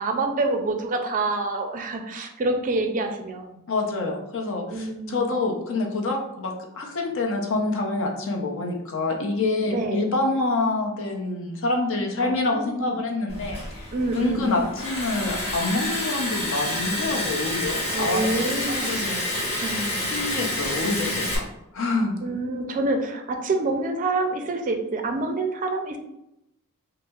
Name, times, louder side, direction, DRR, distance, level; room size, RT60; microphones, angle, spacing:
voice 1, 0.0-3.7 4.7-5.3 9.7-10.1 12.2-13.0 13.9-14.6 17.9-20.1 22.2-26.0, right 2 dB, 35° right, 5 dB, 0.4 m, -27 dB
voice 2, 3.7-18.3 18.7-19.2 20.1-21.4 21.7-22.1, left 2 dB, 65° left, 1 dB, 0.6 m, -27 dB
Liquid, 13.3-21.4, left 1 dB, 25° left, 1.1 m, -29 dB
5.4 x 2.0 x 2.3 m, 0.86 s
head